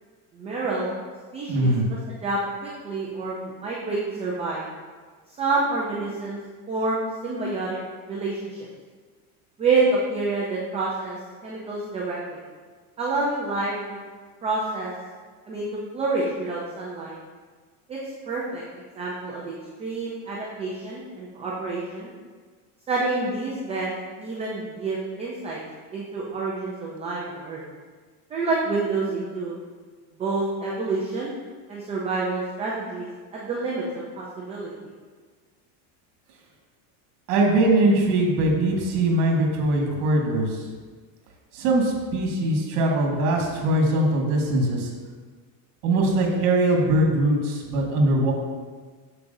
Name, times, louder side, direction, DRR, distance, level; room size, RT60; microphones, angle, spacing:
voice 1, 0.3-1.0 1.3-1.7 2.2-4.6 5.4-6.4 6.7-7.8 8.1-8.7 9.6-11.2 11.4-12.4 13.0-14.0 14.4-14.9 15.5-15.7 15.9-17.2 17.9-18.0 18.3-18.6 19.0-22.1 22.9-25.6 25.9-27.6 28.3-29.6 30.2-31.3 31.7-33.1 33.3-34.7, right 3 dB, 15° right, -5 dB, 0.4 m, -28 dB
voice 2, 1.5-1.9 37.3-40.6 41.5-44.9 45.8-48.3, right 1 dB, 70° right, 0 dB, 1.9 m, -21 dB
8.5 x 7.0 x 2.6 m, 1.5 s
cardioid pair, 175°, 46 cm